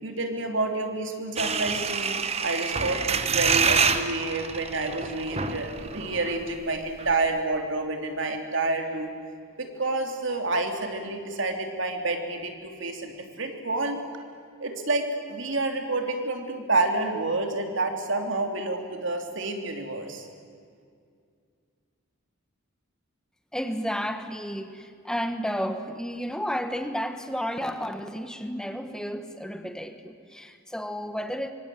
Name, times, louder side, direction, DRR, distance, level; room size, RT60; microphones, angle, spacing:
voice 1, 0.0-2.2 2.4-9.1 9.6-14.0 14.6-20.3, right 2 dB, 60° right, 4 dB, 3.2 m, -29 dB
sound 1, 1.4-6.4 6.7-6.8 7.0-7.3, right 5 dB, 30° right, 1.2 m, -27 dB
voice 2, 23.5-31.5, equal, 5° left, 8 dB, 1.4 m, -32 dB
25.0 x 24.5 x 9.3 m, 2.2 s
head